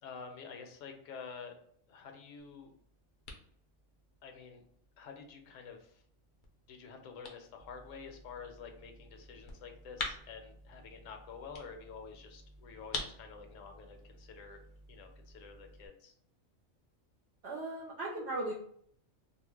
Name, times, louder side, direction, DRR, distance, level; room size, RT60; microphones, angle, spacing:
voice 1, 0.0-1.6 1.9-2.7 4.2-4.6 5.0-6.0 6.7-14.6 14.9-16.1, left 5 dB, 75° left, 4 dB, 0.9 m, -49 dB
sound 1, 2.4-15.9, left 3 dB, 60° left, 0.5 m, -48 dB
voice 2, 17.4-18.5, right 2 dB, 60° right, -4 dB, 0.8 m, -37 dB
2.4 x 2.1 x 3.3 m, 0.64 s
omnidirectional pair, 1.4 m